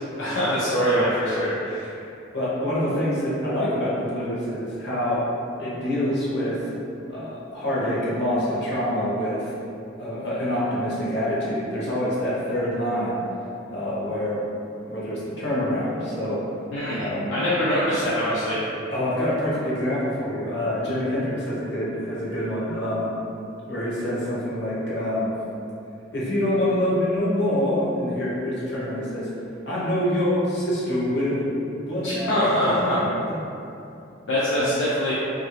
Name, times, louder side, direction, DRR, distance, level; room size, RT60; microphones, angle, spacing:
voice 1, 0.2-1.9 16.7-18.6 32.0-33.0 34.3-35.1, equal, 75° left, -9 dB, 0.5 m, -23 dB
voice 2, 2.3-5.2 5.6-6.6 7.1-9.5 10.0-13.2 13.7-14.4 14.8-16.4 16.9-17.3 18.9-23.1 23.7-25.3 26.1-29.3 29.6-31.5 31.9-33.5 34.6-34.7, left 1 dB, 60° left, -8 dB, 0.9 m, -26 dB
2.7 x 2.5 x 3.0 m, 2.8 s
head